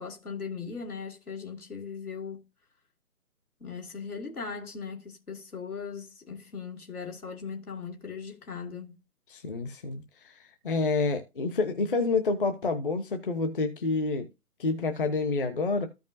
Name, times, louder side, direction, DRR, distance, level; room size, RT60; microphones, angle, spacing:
voice 1, 0.0-2.4 3.6-9.0, left 5 dB, 75° left, 2.8 m, -39 dB
voice 2, 9.3-14.3 14.6-15.9, left 3 dB, 35° left, 1.0 m, -28 dB
14.0 x 5.2 x 2.6 m
figure-of-eight pair, 150°, 45 cm